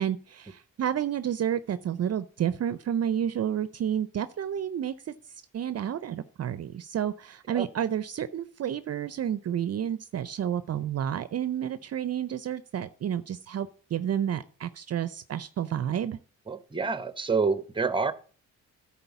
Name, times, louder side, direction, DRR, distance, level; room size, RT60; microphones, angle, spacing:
voice 1, 0.0-4.9 5.5-16.2, right 9 dB, 50° right, 14 dB, 0.5 m, -30 dB
voice 2, 16.5-18.1, right 4 dB, 15° right, 14 dB, 0.8 m, -27 dB
10.5 x 4.3 x 6.9 m, 0.41 s
supercardioid pair, 65°, 33 cm